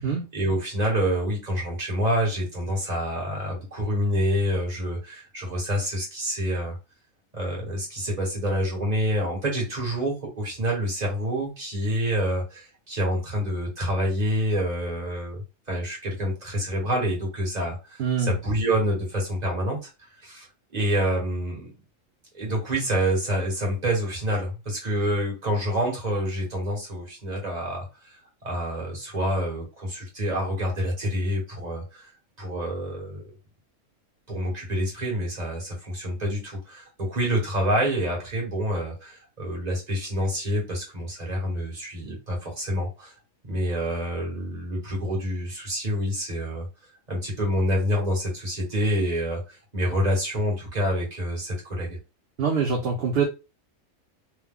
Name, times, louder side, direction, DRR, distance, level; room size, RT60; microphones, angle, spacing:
voice 1, 0.0-6.8 7.3-19.9 20.2-20.5 20.7-21.7 22.3-28.2 28.4-32.1 32.4-33.2 34.3-43.1 43.5-46.6 47.1-52.0, equal, 30° right, -2 dB, 1.5 m, -27 dB
voice 2, 18.0-18.3 52.4-53.2, right 5 dB, 55° right, 1 dB, 0.8 m, -24 dB
3.0 x 2.2 x 3.6 m, 0.27 s
omnidirectional pair, 1.4 m